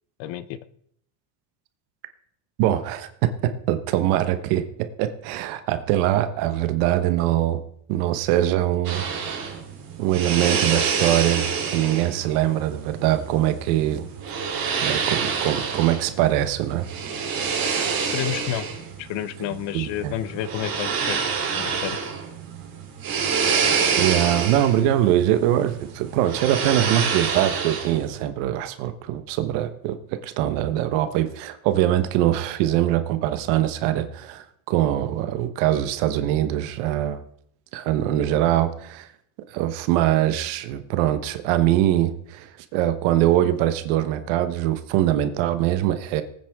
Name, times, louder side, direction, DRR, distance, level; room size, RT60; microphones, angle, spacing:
voice 1, 0.2-0.6 18.1-18.7 19.0-21.2 21.5-22.0, left 12 dB, 60° left, 15 dB, 0.9 m, -30 dB
voice 2, 2.6-7.6 7.9-9.5 10.0-14.1 14.8-16.9 18.0-18.1 19.7-20.1 24.0-37.2 37.7-39.1 39.5-46.2, right 13 dB, 90° right, 10 dB, 1.3 m, -23 dB
sound 1, 8.8-28.2, right 6 dB, 45° right, 3.4 m, -27 dB
18.5 x 9.3 x 3.6 m, 0.68 s
cardioid pair, 140°, 49 cm